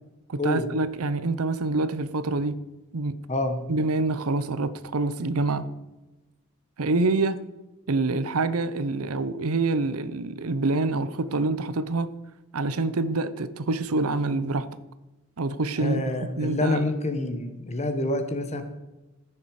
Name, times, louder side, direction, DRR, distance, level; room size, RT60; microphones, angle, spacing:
voice 1, 0.3-2.6 2.9-3.1 3.7-5.6 6.8-7.4 7.9-12.1 12.5-14.7 15.4-16.0 16.4-16.9, right 3 dB, 80° right, 0.7 m, -26 dB
voice 2, 15.8-18.6, left 2 dB, 30° left, 1.2 m, -27 dB
15.0 x 6.8 x 4.9 m
head